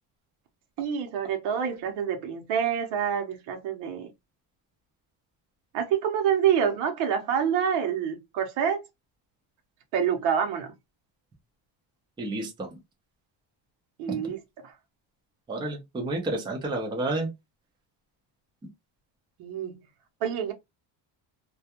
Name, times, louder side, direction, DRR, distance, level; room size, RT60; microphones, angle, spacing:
voice 1, 0.8-4.1 5.7-8.8 9.9-10.7 14.0-14.4 14.6-14.7 19.4-19.8 20.2-20.5, right 8 dB, 85° right, 0.9 m, -27 dB
voice 2, 12.2-12.7 15.5-17.3, right 2 dB, 10° right, 0.3 m, -30 dB
2.3 x 2.1 x 2.7 m
cardioid pair, 155°, 49 cm